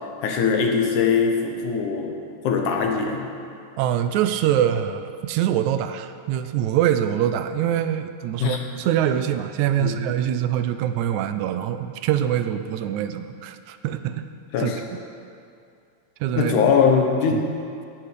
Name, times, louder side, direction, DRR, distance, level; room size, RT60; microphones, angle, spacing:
voice 1, 0.2-2.1 2.4-3.3 8.4-8.6 9.8-9.9 14.5-14.8 16.4-17.5, left 6 dB, 90° left, 3 dB, 2.7 m, -21 dB
voice 2, 3.8-14.3 14.6-14.7 16.2-16.5 17.3-17.4, right 10 dB, 80° right, 10 dB, 1.9 m, -24 dB
17.0 x 6.0 x 6.6 m, 2.4 s
omnidirectional pair, 3.4 m